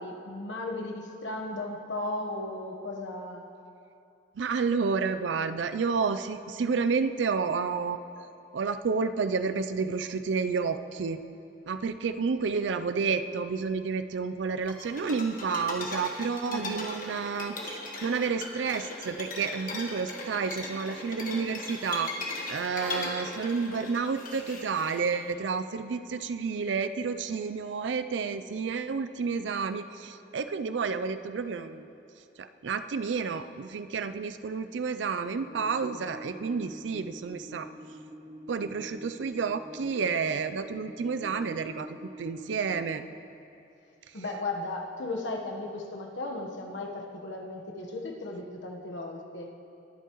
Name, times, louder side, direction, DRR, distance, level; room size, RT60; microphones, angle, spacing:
voice 1, 0.0-3.5 16.5-16.8 44.1-49.5, left 2 dB, 90° left, 1 dB, 1.2 m, -36 dB
voice 2, 4.4-8.0 8.5-11.2 11.7-22.1 22.5-31.9 32.4-37.7 38.5-43.0, right 5 dB, 85° right, 11 dB, 0.4 m, -30 dB
sound 1, 14.7-25.2, left 2 dB, 50° left, 1.4 m, -38 dB
sound 2, 35.4-42.9, equal, 20° right, 1.6 m, -46 dB
21.0 x 8.1 x 3.1 m, 2.7 s
head